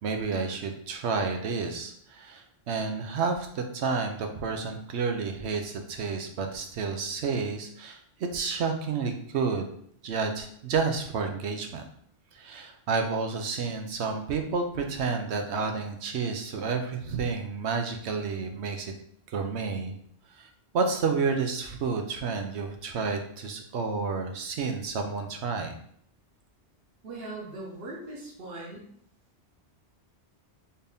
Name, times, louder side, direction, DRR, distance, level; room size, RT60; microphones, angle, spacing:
voice 1, 0.0-9.7 10.0-11.8 12.3-18.9 19.3-19.9 20.4-25.7, right 4 dB, 85° right, 4 dB, 0.9 m, -30 dB
voice 2, 27.0-28.9, right 2 dB, 60° right, -3 dB, 1.2 m, -40 dB
4.2 x 2.7 x 3.4 m, 0.65 s
omnidirectional pair, 1.1 m